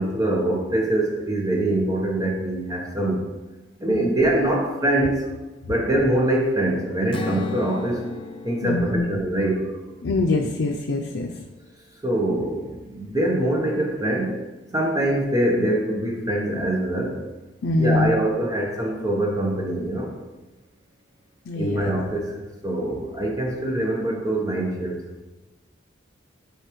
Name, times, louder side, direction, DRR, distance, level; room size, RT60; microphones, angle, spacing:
voice 1, 0.0-3.3 3.8-5.2 5.7-8.1 8.4-9.7 12.0-14.4 14.7-17.2 17.8-20.1 21.6-22.4 22.6-25.2, right 1 dB, 20° right, -1 dB, 0.8 m, -24 dB
Strum, 7.1-11.3, left 3 dB, 30° left, 0.3 m, -36 dB
voice 2, 8.6-9.0 10.0-11.3 17.6-18.2 21.5-21.9, left 2 dB, 90° left, 2 dB, 0.5 m, -23 dB
8.0 x 4.7 x 3.1 m, 1.1 s
head